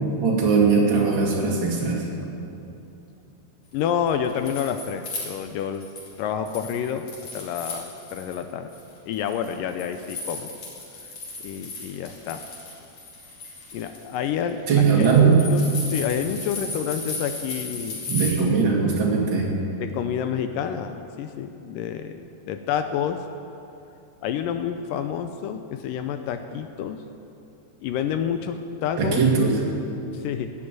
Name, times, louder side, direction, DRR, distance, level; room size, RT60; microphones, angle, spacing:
voice 1, 0.2-2.1 14.7-15.4 18.1-19.5 29.0-29.6, right 5 dB, 35° right, -3 dB, 2.8 m, -19 dB
voice 2, 3.7-5.9 6.2-7.1 7.3-8.7 9.1-10.5 11.4-12.4 13.7-18.1 19.8-23.2 24.2-27.0 27.8-29.2 30.1-30.5, left 8 dB, 80° left, 8 dB, 2.0 m, -29 dB
sound 1, 4.1-6.1 6.5-8.4 8.7-18.3, left 3 dB, 45° left, 3.9 m, -36 dB
15.5 x 8.6 x 9.3 m, 2.7 s
omnidirectional pair, 4.4 m